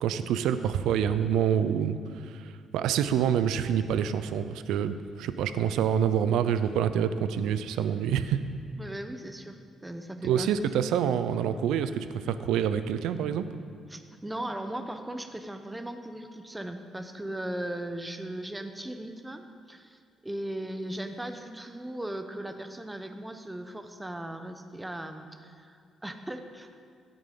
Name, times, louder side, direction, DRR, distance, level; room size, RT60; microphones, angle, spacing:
voice 1, 0.0-2.0 2.2-8.4 10.2-13.5, right 9 dB, 90° right, 12 dB, 0.5 m, -27 dB
voice 2, 8.8-10.5 13.9-26.8, right 1 dB, 10° right, 7 dB, 0.9 m, -38 dB
16.5 x 8.9 x 3.8 m, 2.2 s
cardioid pair, 90°, 0 cm